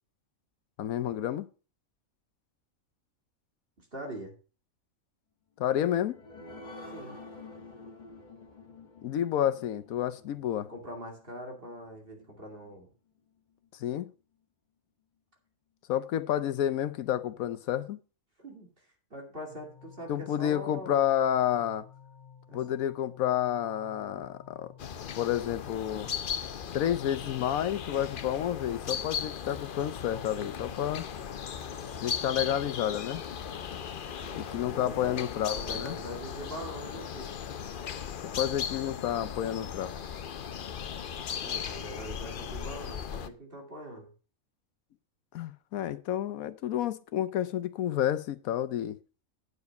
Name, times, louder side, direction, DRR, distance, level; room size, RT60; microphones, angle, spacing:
voice 1, 0.8-1.5 5.6-6.2 9.0-10.7 13.7-14.1 15.9-18.0 20.1-21.9 22.5-24.7 25.2-26.1 26.7-31.0 32.0-33.2 34.3-36.0 38.3-39.9 45.3-49.0, left 11 dB, 80° left, 1.2 m, -30 dB
voice 2, 3.8-4.3 6.9-7.2 10.7-12.9 18.4-21.0 22.5-22.6 34.2-37.3 41.4-44.1, right 1 dB, 40° right, 2.6 m, -43 dB
sound 1, 5.7-12.7 13.2-13.3 13.6-13.7, left 2 dB, 35° left, 1.4 m, -49 dB
sound 2, 19.5-32.2, left 7 dB, 15° left, 1.0 m, -53 dB
sound 3, 24.8-43.3, left 7 dB, 50° left, 0.7 m, -37 dB
9.6 x 7.1 x 5.3 m
omnidirectional pair, 1.5 m